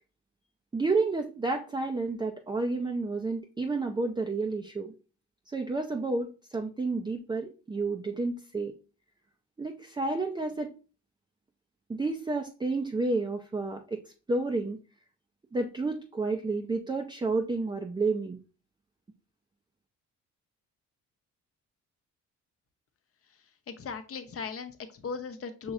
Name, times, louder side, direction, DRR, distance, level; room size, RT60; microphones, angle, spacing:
voice 1, 0.7-4.9 5.5-8.8 9.6-10.7 11.9-14.0 14.3-14.8 15.5-18.4, right 3 dB, 15° right, 4 dB, 0.5 m, -30 dB
voice 2, 23.7-25.7, left 5 dB, 50° left, 9 dB, 0.8 m, -38 dB
6.2 x 3.1 x 2.5 m, 0.34 s
cardioid pair, 90°, 30 cm